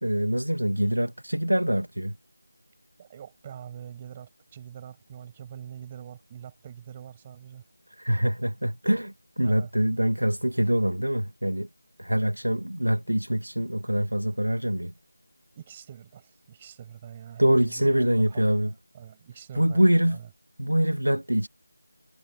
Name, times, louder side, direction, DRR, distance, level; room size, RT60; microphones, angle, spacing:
voice 1, 0.0-2.2 8.0-11.7 12.0-14.9 17.4-18.7 19.5-20.2 20.6-21.5, right 1 dB, 85° right, 1.6 m, -24 dB
voice 2, 3.0-7.6 9.4-9.7 15.5-20.3, right 9 dB, 15° right, 5.9 m, -44 dB
figure-of-eight pair, 165°, 0 cm